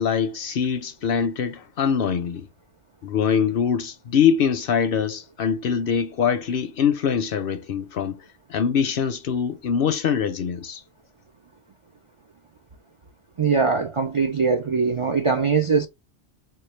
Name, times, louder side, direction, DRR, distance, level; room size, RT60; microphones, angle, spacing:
voice 1, 0.0-2.5 3.0-8.2 8.5-10.8, left 7 dB, 60° left, 0.6 m, -23 dB
voice 2, 13.4-15.9, right 5 dB, 55° right, 0.3 m, -21 dB
4.5 x 2.3 x 3.1 m
omnidirectional pair, 1.2 m